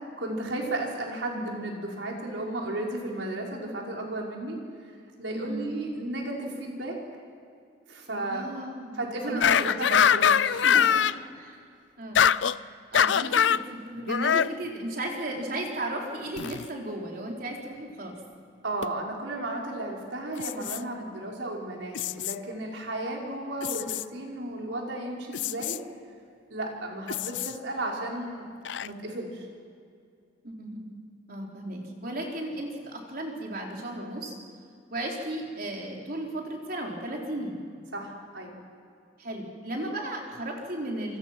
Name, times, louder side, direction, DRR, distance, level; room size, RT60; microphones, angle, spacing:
voice 1, 0.0-4.6 5.2-6.9 7.9-8.5 8.9-11.1 18.6-25.8 26.5-28.5 28.8-29.5 37.9-38.5, right 1 dB, 90° right, -1 dB, 5.2 m, -34 dB
voice 2, 5.3-5.7 8.3-9.0 9.3-9.7 10.6-11.6 12.0-12.3 12.9-18.1 30.4-31.0 31.3-34.3 34.9-37.6 39.2-41.2, right 1 dB, 55° right, -1 dB, 4.3 m, -35 dB
sound 1, 9.4-11.2 12.1-12.6 12.9-13.6 14.1-14.5 16.4-16.7 18.8-18.9 20.4-20.8 21.9-22.4 23.6-24.0 25.3-25.8 27.1-27.5 28.6-28.9, left 8 dB, 80° left, 0.5 m, -23 dB
27.0 x 25.0 x 6.1 m, 2.3 s
head